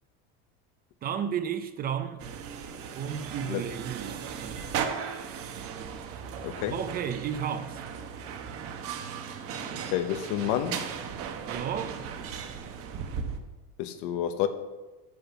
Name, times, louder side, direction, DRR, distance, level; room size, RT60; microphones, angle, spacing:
voice 1, 1.0-2.2 3.0-4.6 6.7-7.8 11.5-12.1, right 8 dB, 30° right, 0.6 m, -33 dB
sound 1, 2.2-13.4, right 7 dB, 45° right, 1.2 m, -37 dB
voice 2, 6.4-6.7 9.9-10.8 13.8-14.5, left 11 dB, 75° left, 1.1 m, -29 dB
9.3 x 7.2 x 7.0 m
cardioid pair, 165°, 31 cm